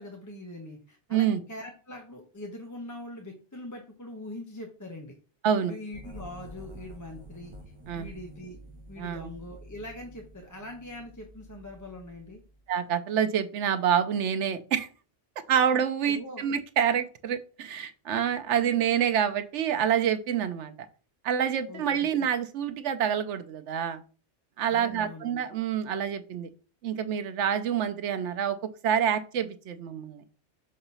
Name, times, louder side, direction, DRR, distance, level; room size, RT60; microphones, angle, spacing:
voice 1, 0.0-5.1 5.6-7.5 7.9-8.6 8.9-12.4 16.1-16.4 21.7-22.1 24.7-25.3, left 1 dB, 15° left, 1 dB, 0.9 m, -42 dB
voice 2, 5.4-5.8 7.9-8.1 9.0-9.3 12.7-14.9 15.5-20.7 21.2-24.0 24.6-26.5 26.8-28.6 28.8-30.2, right 8 dB, 85° right, 9 dB, 1.0 m, -27 dB
sound 1, 5.9-12.7, right 1 dB, 30° right, 0.8 m, -48 dB
6.4 x 2.9 x 5.4 m, 0.37 s
omnidirectional pair, 1.2 m